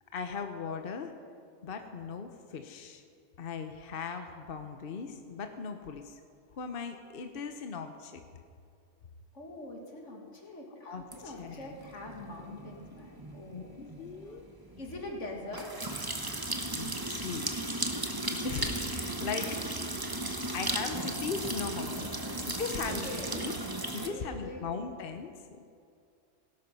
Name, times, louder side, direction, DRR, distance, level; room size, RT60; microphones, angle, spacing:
voice 1, 0.1-1.1 1.6-3.0 3.4-6.2 6.5-8.2 10.8-11.7 13.5-14.4 16.7-17.5 18.3-19.4 20.0-20.1 20.5-22.2 22.6-23.1 23.3-23.5 23.9-25.6, left 5 dB, 50° left, 6 dB, 1.0 m, -38 dB
voice 2, 9.3-13.8 14.1-14.4 14.8-15.8 16.2-17.1 19.2-19.6 20.2-20.6 22.1-22.4 22.9-23.3 23.8-24.7, left 2 dB, 75° left, 1 dB, 2.4 m, -44 dB
sound 1, 11.1-24.1, right 1 dB, 20° right, 1.1 m, -36 dB
17.5 x 12.0 x 5.5 m, 2.4 s
omnidirectional pair, 1.3 m